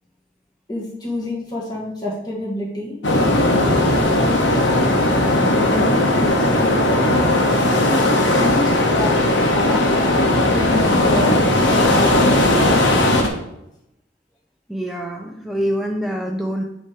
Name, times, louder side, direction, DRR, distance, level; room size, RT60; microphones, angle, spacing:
voice 1, 0.7-3.0 3.9-4.4 5.6-9.2 9.5-9.9 10.5-12.4, left 1 dB, 25° left, -5 dB, 1.7 m, -28 dB
sound 1, 3.0-13.3, left 1 dB, 85° left, 1.2 m, -17 dB
voice 2, 14.7-16.6, equal, ahead, 1 dB, 0.5 m, -25 dB
8.2 x 3.2 x 4.9 m, 0.80 s
head